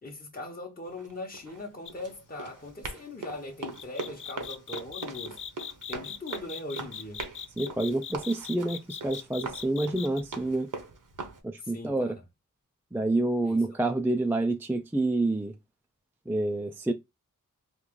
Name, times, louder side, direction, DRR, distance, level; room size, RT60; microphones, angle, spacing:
voice 1, 0.0-5.4 5.9-7.2 11.6-12.1 13.4-13.6, left 2 dB, 30° left, 0.9 m, -40 dB
Run, 0.9-11.4, right 3 dB, 70° right, 1.0 m, -41 dB
sound 1, 1.9-2.1 3.7-10.2, left 8 dB, 70° left, 0.5 m, -40 dB
voice 2, 7.6-10.7 11.4-12.2 12.9-15.5 16.3-16.9, right 2 dB, 5° right, 0.3 m, -28 dB
3.1 x 2.5 x 3.7 m
wide cardioid pair, 70°, 32 cm